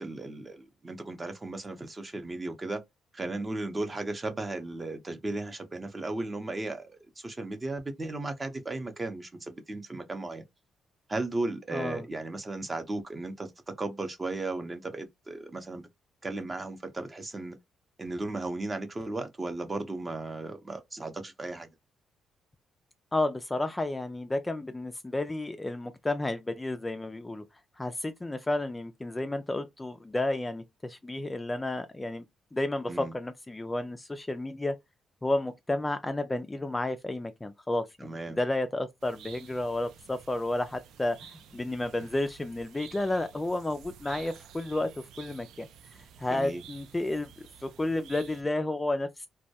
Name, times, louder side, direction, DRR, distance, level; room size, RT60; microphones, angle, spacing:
voice 1, 0.0-2.8 3.1-10.4 11.1-13.5 13.8-15.9 16.2-17.6 18.0-21.7 32.9-33.1 38.0-38.4 46.3-46.6, right 2 dB, 25° right, 0.6 m, -35 dB
voice 2, 11.7-12.0 23.1-27.4 27.8-32.3 32.5-34.8 35.2-41.2 41.5-44.9 45.2-45.7 46.2-47.3 47.6-49.3, left 2 dB, 15° left, 0.3 m, -31 dB
sound 1, 39.0-48.4, right 8 dB, 80° right, 0.3 m, -51 dB
2.2 x 2.1 x 2.7 m
cardioid pair, 90°, 0 cm